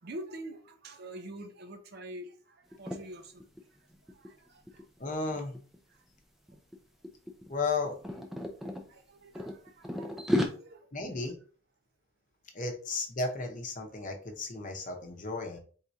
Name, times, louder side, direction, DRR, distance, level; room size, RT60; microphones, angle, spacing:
voice 1, 0.0-3.4 4.0-4.9 5.9-6.0 8.6-11.2, right 1 dB, 45° right, 0.6 m, -46 dB
sound 1, 2.7-3.0 3.4-3.6 3.9-5.8 6.5-6.8 7.0-8.8 9.3-10.5, left 1 dB, ahead, 0.5 m, -33 dB
voice 2, 5.0-5.6 7.5-8.0 10.9-11.4 12.5-15.6, left 3 dB, 35° left, 0.8 m, -34 dB
4.5 x 3.6 x 2.7 m
head